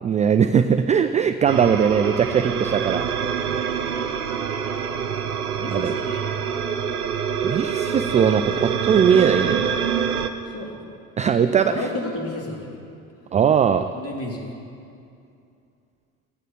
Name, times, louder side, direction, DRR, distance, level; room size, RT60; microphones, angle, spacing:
voice 1, 0.0-3.0 5.7-5.9 7.4-9.6 11.2-11.9 13.3-13.9, right 7 dB, 20° right, 10 dB, 0.3 m, -19 dB
sound 1, 1.5-10.3, right 7 dB, 90° right, 0.7 m, -26 dB
voice 2, 5.5-6.3 10.5-11.0 11.4-12.8 13.9-14.5, left 2 dB, 30° left, -1 dB, 3.2 m, -32 dB
14.5 x 9.1 x 7.2 m, 2.5 s
figure-of-eight pair, 55°, 44 cm